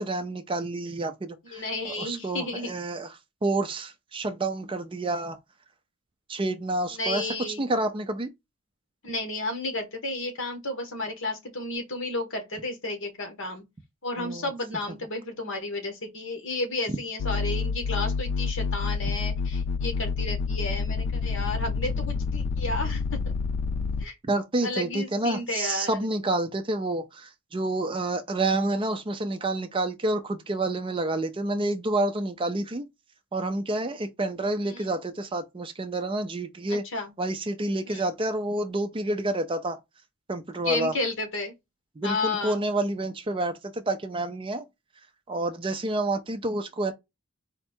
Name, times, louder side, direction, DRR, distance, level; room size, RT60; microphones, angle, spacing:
voice 1, 0.0-3.1 3.4-5.4 6.3-7.3 7.6-8.3 14.2-14.5 24.3-32.8 33.3-36.8 37.2-39.8 40.3-40.9 42.0-44.6 45.3-46.9, right 2 dB, 25° right, 0.4 m, -29 dB
voice 2, 1.5-2.8 6.9-7.6 9.0-13.6 14.0-23.2 24.0-24.2 24.6-26.1 34.6-34.9 36.7-37.1 37.9-38.0 40.6-41.5 42.0-42.6, left 2 dB, 55° left, 1.4 m, -32 dB
sound 1, 17.2-24.1, left 4 dB, 85° left, 0.4 m, -28 dB
4.3 x 2.4 x 4.3 m
head